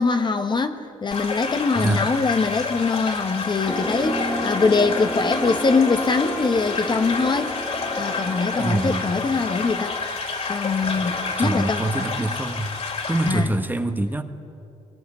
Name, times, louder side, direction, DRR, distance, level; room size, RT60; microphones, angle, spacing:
voice 1, 0.0-7.6 7.9-9.9 10.5-11.9 13.3-13.5, left 4 dB, 35° left, 7 dB, 1.4 m, -23 dB
sound 1, 1.1-13.3, left 4 dB, 50° left, 4.4 m, -29 dB
voice 2, 1.7-2.1 8.6-9.1 11.4-12.7 13.1-14.2, right 2 dB, 15° right, 7 dB, 1.6 m, -24 dB
sound 2, 3.7-9.1, left 1 dB, 10° left, 2.0 m, -31 dB
23.0 x 20.5 x 9.9 m, 2.6 s
cardioid pair, 85°, 13 cm